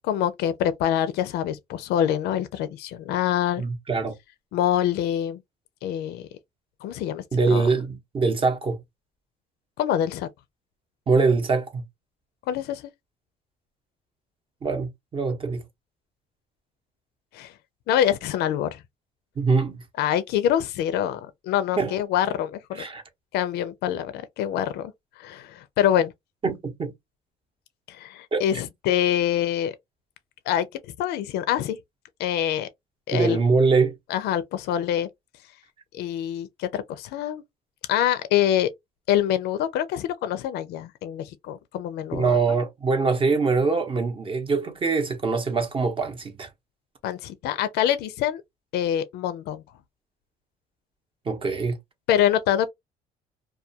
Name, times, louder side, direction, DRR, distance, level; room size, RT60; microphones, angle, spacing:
voice 1, 0.1-3.6 4.5-5.4 5.8-6.2 6.8-7.7 9.8-10.3 12.5-12.8 17.3-17.5 17.9-18.8 20.0-22.8 23.3-24.9 25.2-26.1 27.9-29.7 30.5-30.7 31.0-31.8 32.2-32.7 33.1-33.4 34.1-35.1 35.9-37.4 37.9-38.7 39.1-42.4 47.0-48.4 48.7-49.6 52.1-52.7, left 10 dB, 75° left, 0.4 m, -25 dB
voice 2, 3.6-4.1 7.3-8.8 11.1-11.8 14.6-15.6 19.4-19.8 21.8-22.0 22.7-23.0 26.4-26.9 28.3-28.4 33.1-34.0 42.1-46.5 51.2-51.8, right 4 dB, 30° right, 0.7 m, -23 dB
2.3 x 2.3 x 2.6 m
cardioid pair, 110°, 17 cm